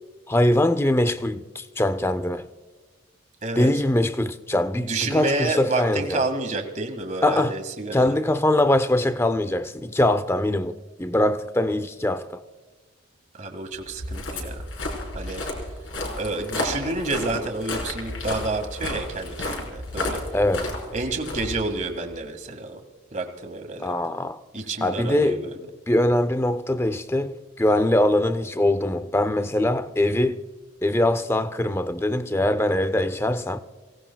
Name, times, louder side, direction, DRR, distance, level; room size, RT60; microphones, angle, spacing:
voice 1, 0.3-2.5 3.6-6.2 7.2-7.6 7.9-12.4 20.3-20.7 23.8-24.4 24.8-25.4 25.9-30.4 30.8-33.6, left 1 dB, 10° left, 0.5 m, -22 dB
voice 2, 4.5-8.1 13.3-14.6 15.1-15.4 16.2-20.3 20.9-22.8 23.1-24.0 24.5-25.6, right 3 dB, 35° right, 1.9 m, -29 dB
Walk footsteps, 13.8-22.1, left 1 dB, 70° left, 4.6 m, -32 dB
28.0 x 17.5 x 2.3 m
head